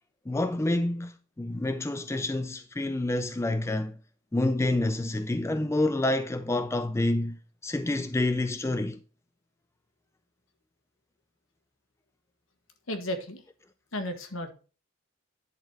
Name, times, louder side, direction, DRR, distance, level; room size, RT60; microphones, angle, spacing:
voice 1, 0.3-4.0 4.3-7.4 7.6-9.0, left 2 dB, 15° left, 0.3 m, -28 dB
voice 2, 12.9-13.4 13.9-14.5, left 1 dB, 80° left, 1.4 m, -33 dB
10.5 x 4.2 x 4.4 m
head